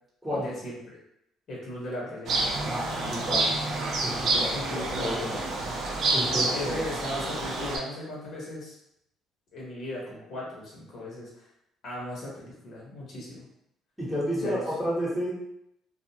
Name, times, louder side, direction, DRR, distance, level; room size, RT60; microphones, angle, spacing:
voice 1, 0.3-1.0 1.5-2.4 4.3-5.6 6.3-8.8 9.5-11.5 11.8-13.5 14.4-14.6, left 1 dB, 60° left, -5 dB, 1.1 m, -37 dB
sound 1, 2.3-7.8, right 2 dB, 60° right, 0.6 m, -28 dB
voice 2, 2.7-3.5 4.0-4.3 5.0-5.4 6.1-6.9 14.0-15.3, equal, 5° right, -6 dB, 1.1 m, -31 dB
2.4 x 2.3 x 2.9 m, 0.79 s
cardioid pair, 100°, 0 cm